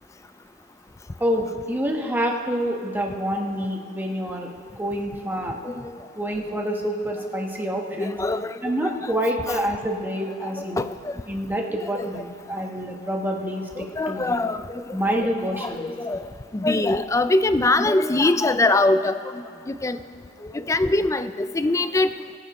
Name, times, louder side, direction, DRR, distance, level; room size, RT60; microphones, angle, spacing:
voice 1, 1.2-5.6 6.1-8.2 8.6-10.8 11.3-14.4 14.9-15.9, equal, 10° right, 1 dB, 1.2 m, -27 dB
voice 2, 8.0-8.9 10.6-11.1 11.9-12.1 14.0-14.8 15.6-16.3 16.5-19.2 19.7-20.0 20.5-22.1, left 2 dB, 15° left, 12 dB, 0.4 m, -22 dB
22.5 x 9.5 x 3.1 m, 2.7 s
head